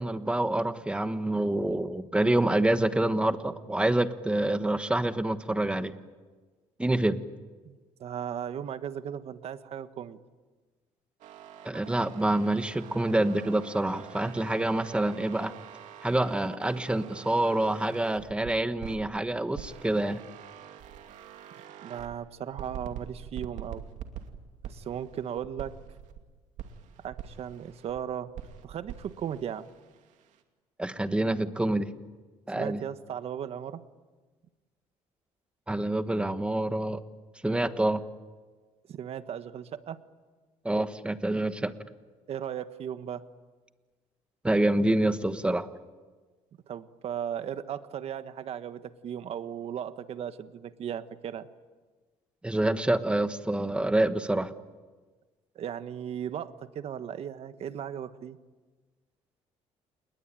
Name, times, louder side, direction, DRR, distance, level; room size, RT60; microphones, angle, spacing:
voice 1, 0.0-5.9 6.8-7.2 11.6-15.5 16.0-20.2 30.8-31.9 32.5-32.8 35.7-37.0 37.4-38.0 40.6-41.7 44.4-45.7 52.4-54.5, right 1 dB, 10° right, 10 dB, 1.3 m, -27 dB
voice 2, 7.6-10.2 21.8-23.8 24.6-25.7 27.0-28.3 28.6-29.7 32.5-33.8 38.9-40.0 42.3-43.2 46.7-51.5 55.5-58.4, right 9 dB, 55° right, 11 dB, 1.4 m, -36 dB
sound 1, 11.2-19.1 19.5-22.2 22.6-26.2 26.6-28.0 28.3-30.4, right 9 dB, 80° right, 2.6 m, -45 dB
28.5 x 21.0 x 9.1 m, 1.3 s
cardioid pair, 130°, 12 cm